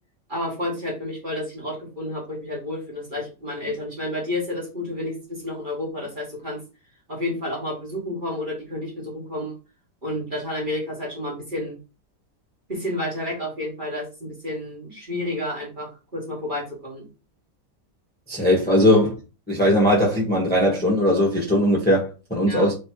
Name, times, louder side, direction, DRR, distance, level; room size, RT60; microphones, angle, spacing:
voice 1, 0.3-6.6 7.1-9.5 10.0-11.8 12.7-17.0 22.4-22.7, left 1 dB, 30° right, 1.7 m, -30 dB
voice 2, 18.3-19.1 19.5-22.7, left 1 dB, 5° left, 1.2 m, -19 dB
3.3 x 3.3 x 4.5 m
omnidirectional pair, 1.9 m